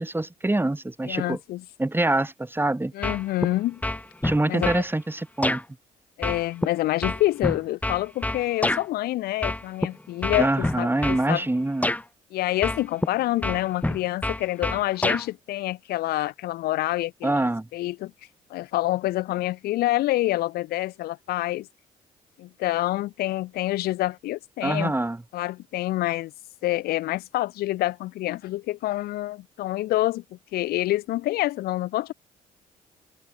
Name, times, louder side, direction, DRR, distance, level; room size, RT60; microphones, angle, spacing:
voice 1, 0.0-1.4 1.8-2.9 4.2-5.6 10.4-11.9 17.2-17.7 24.6-25.2, right 2 dB, 15° right, 6.5 m, -25 dB
voice 2, 1.0-1.6 2.9-3.8 4.5-4.8 6.2-11.4 12.3-17.3 17.7-18.1 18.5-21.7 22.4-24.9 25.3-26.3 26.6-30.2 30.5-32.1, left 16 dB, 80° left, 3.7 m, -27 dB
sound 1, 3.0-3.5 3.8-4.8 5.4-5.6 6.2-8.9 9.4-9.9 10.2-11.2 11.8-12.0 12.6-13.1 13.4-15.3, left 1 dB, 10° left, 2.3 m, -26 dB
open air
supercardioid pair, 70°, 16 cm